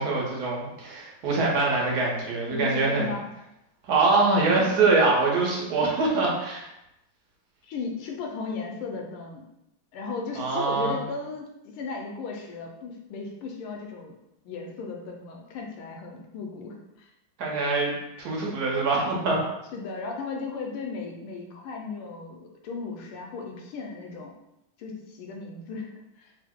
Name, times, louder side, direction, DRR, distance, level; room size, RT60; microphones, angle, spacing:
voice 1, 0.0-3.1 3.8-6.7 10.3-11.0 17.4-19.4, right 3 dB, 60° right, -3 dB, 1.1 m, -24 dB
voice 2, 2.5-3.3 4.5-4.6 7.6-9.5 9.9-14.2 14.4-17.1 19.7-24.4 24.8-26.3, left 4 dB, 85° left, 1 dB, 1.5 m, -36 dB
3.6 x 2.0 x 3.5 m, 0.86 s
omnidirectional pair, 2.3 m